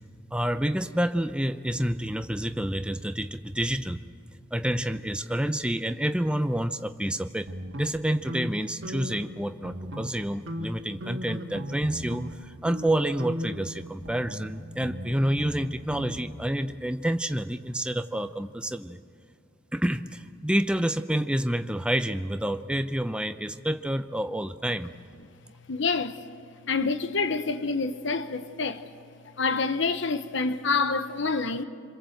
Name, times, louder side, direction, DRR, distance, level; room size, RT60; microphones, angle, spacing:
voice 1, 0.3-4.0 4.5-7.5 7.7-19.0 19.7-24.9, right 1 dB, 5° right, 0.6 m, -28 dB
sound 1, 7.5-9.3 9.6-10.2 10.5-12.4 12.7-12.9 13.2-16.2, equal, 65° right, 1.9 m, -37 dB
voice 2, 25.7-26.2 26.7-28.8 29.4-31.6, left 4 dB, 60° left, 0.9 m, -27 dB
27.5 x 22.5 x 7.9 m
head